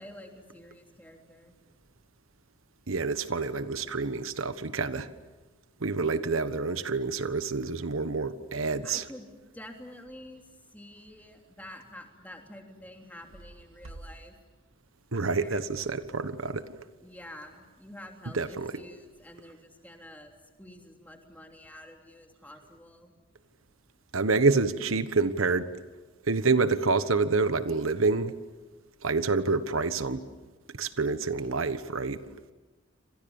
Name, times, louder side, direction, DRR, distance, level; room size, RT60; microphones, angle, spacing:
voice 1, 0.0-1.5 8.8-9.3 9.5-10.4 10.7-14.3 15.2-15.6 17.0-20.3 20.6-23.1, left 1 dB, 10° left, 3.1 m, -48 dB
voice 2, 2.9-5.1 5.8-9.0 15.1-16.7 18.3-18.7 24.1-25.7 26.3-28.3 29.0-30.2 30.8-32.2, right 4 dB, 90° right, 1.3 m, -27 dB
28.5 x 26.5 x 7.2 m
head